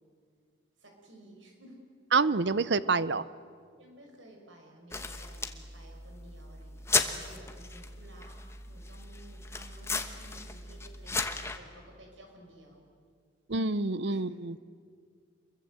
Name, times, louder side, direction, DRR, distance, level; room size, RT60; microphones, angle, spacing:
voice 1, 0.8-1.8 3.8-8.4 8.7-12.9 14.1-14.2, right 1 dB, 85° right, 2 dB, 6.0 m, -54 dB
voice 2, 2.1-3.3 13.5-14.6, right 4 dB, 65° right, 16 dB, 0.7 m, -27 dB
sound 1, 4.9-11.6, left 4 dB, 15° left, 1.1 m, -35 dB
28.0 x 22.5 x 7.8 m, 2.1 s
head